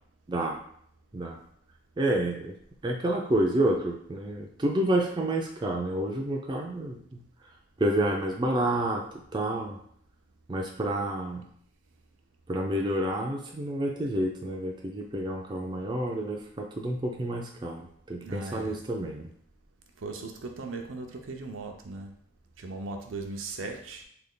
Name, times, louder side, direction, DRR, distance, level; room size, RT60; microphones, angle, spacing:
voice 1, 2.0-2.5 2.8-7.2 7.8-9.0 9.3-9.8 10.5-11.5 12.5-19.3, right 1 dB, 20° right, 0 dB, 0.4 m, -29 dB
voice 2, 18.2-18.8 20.0-22.1 22.6-24.0, right 3 dB, 80° right, 3 dB, 0.5 m, -38 dB
3.3 x 2.2 x 3.7 m, 0.66 s
head